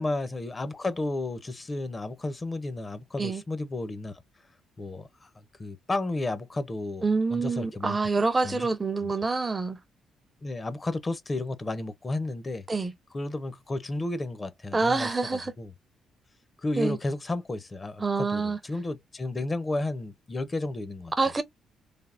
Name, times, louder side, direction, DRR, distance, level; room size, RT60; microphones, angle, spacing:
voice 1, 0.0-4.2 4.8-5.3 5.6-7.0 7.3-8.0 8.4-8.7 9.0-9.1 10.4-12.7 13.1-15.7 16.6-21.1, left 2 dB, 25° left, 0.6 m, -32 dB
voice 2, 7.0-9.8 12.7-12.9 14.7-15.5 16.8-17.0 18.0-18.6 21.2-21.4, right 3 dB, 25° right, 0.5 m, -26 dB
3.3 x 2.1 x 2.4 m
cardioid pair, 90°, 0 cm